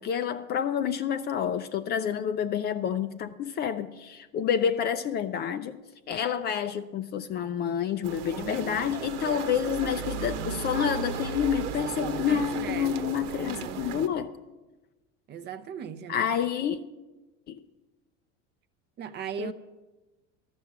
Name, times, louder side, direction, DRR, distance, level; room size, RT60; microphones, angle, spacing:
voice 1, 0.0-5.8 6.1-14.3 16.1-16.8 17.5-17.6 19.4-19.5, left 8 dB, 30° left, 0.4 m, -28 dB
sound 1, 8.0-14.1, right 7 dB, 80° right, 1.1 m, -35 dB
voice 2, 8.3-8.9 12.3-13.1 13.4-14.2 15.3-16.5 19.0-19.5, right 8 dB, 30° right, 0.6 m, -39 dB
12.5 x 7.0 x 9.2 m
supercardioid pair, 145°, 34 cm